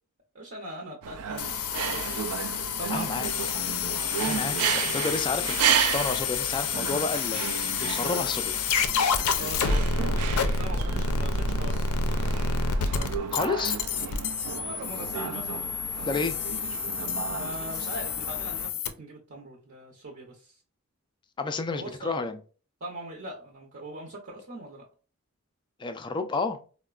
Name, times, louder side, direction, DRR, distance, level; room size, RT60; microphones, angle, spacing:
voice 1, 0.3-2.2 2.8-3.5 9.3-13.4 13.6-13.8 14.5-15.7 17.3-20.4 21.7-22.2 22.8-24.8, right 1 dB, 55° right, -2 dB, 0.7 m, -41 dB
sound 1, 1.0-18.7, right 8 dB, 85° right, 0.4 m, -33 dB
sound 2, 1.4-18.9, left 5 dB, 85° left, 0.4 m, -29 dB
voice 2, 2.9-3.3 4.2-8.5 13.3-13.8 16.0-16.4 21.4-22.4 25.8-26.6, left 4 dB, 20° left, 8 dB, 0.3 m, -31 dB
3.9 x 2.1 x 2.3 m, 0.36 s
head